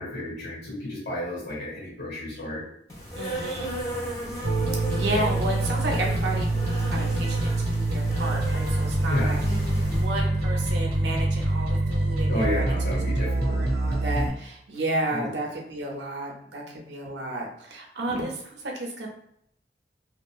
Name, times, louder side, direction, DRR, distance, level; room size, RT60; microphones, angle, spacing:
voice 1, 0.0-2.6 9.1-9.4 12.3-13.7 15.1-15.3, left 1 dB, 80° left, -6 dB, 1.2 m, -31 dB
Insect, 2.9-10.1, right 1 dB, 20° left, 0.7 m, -35 dB
voice 2, 3.2-3.7 4.9-9.4 9.8-12.7 13.2-19.1, right 1 dB, 80° right, 0 dB, 0.6 m, -32 dB
sound 1, 4.4-14.3, right 2 dB, 60° right, 0.9 m, -25 dB
2.8 x 2.3 x 2.3 m, 0.72 s
head